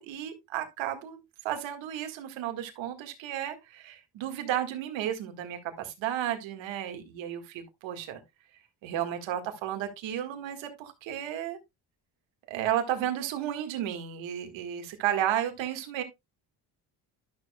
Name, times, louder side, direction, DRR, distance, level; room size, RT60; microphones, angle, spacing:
voice 1, 0.0-8.2 8.8-11.6 12.5-16.0, right 11 dB, 90° right, 1.9 m, -33 dB
12.0 x 6.4 x 2.3 m
cardioid pair, 95°, 45 cm